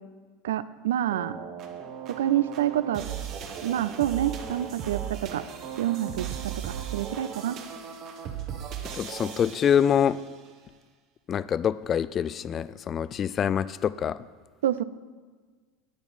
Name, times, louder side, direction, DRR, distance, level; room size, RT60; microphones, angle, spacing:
voice 1, 0.4-1.4 2.1-3.1 3.6-5.4 5.8-7.6 14.6-14.8, right 11 dB, 70° right, 15 dB, 0.4 m, -27 dB
sound 1, 1.1-10.3, right 8 dB, 45° right, 1.2 m, -37 dB
voice 2, 8.9-10.2 11.3-14.2, left 8 dB, 35° left, 17 dB, 0.3 m, -25 dB
10.5 x 9.4 x 4.1 m, 1.4 s
figure-of-eight pair, 80°, 0 cm